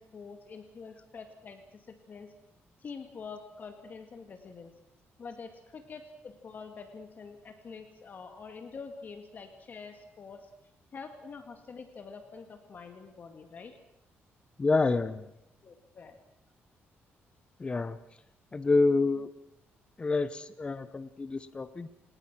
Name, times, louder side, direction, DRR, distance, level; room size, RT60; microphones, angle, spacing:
voice 1, 0.0-2.3 2.8-4.7 5.2-10.4 10.9-13.7 15.6-16.2, left 5 dB, 40° left, 6 dB, 2.0 m, -46 dB
voice 2, 14.6-15.3 17.6-18.0 18.5-19.3 20.0-21.9, left 3 dB, 25° left, 13 dB, 0.9 m, -28 dB
28.5 x 19.0 x 6.1 m, 0.83 s
cardioid pair, 130°, 5 cm